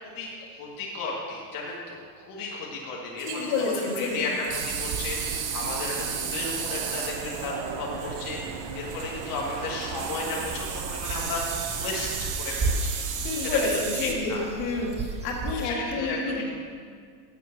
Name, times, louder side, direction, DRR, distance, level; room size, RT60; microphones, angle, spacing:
voice 1, 0.2-11.4 11.8-13.0 13.4-14.5 15.6-16.5, left 3 dB, 45° left, -4 dB, 1.7 m, -34 dB
sound 1, 3.2-14.1, right 7 dB, 40° right, 1.1 m, -35 dB
voice 2, 3.3-4.2 13.2-14.9 15.2-16.5, left 3 dB, 65° left, -1 dB, 2.1 m, -29 dB
sound 2, 4.5-12.4, right 7 dB, 85° right, 0.9 m, -38 dB
sound 3, 10.4-15.5, right 3 dB, 15° right, 0.4 m, -34 dB
7.7 x 7.6 x 5.9 m, 2.1 s
supercardioid pair, 130°, 48 cm